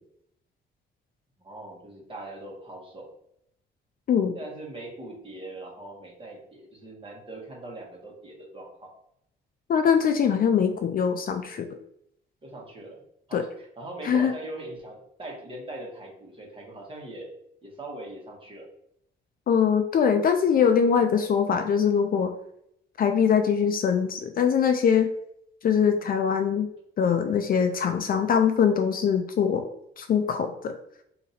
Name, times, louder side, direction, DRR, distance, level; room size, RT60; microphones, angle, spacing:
voice 1, 1.4-3.1 4.3-8.9 12.4-13.0 13.3-17.3 17.6-18.7, right 2 dB, 25° right, -2 dB, 1.3 m, -41 dB
voice 2, 9.7-11.7 13.3-13.4 14.0-14.3 19.5-22.3 23.0-25.1 25.6-26.7 27.0-29.6 30.0-30.7, left 7 dB, 45° left, 7 dB, 0.4 m, -22 dB
2.8 x 2.6 x 4.2 m, 0.74 s
cardioid pair, 90°, 20 cm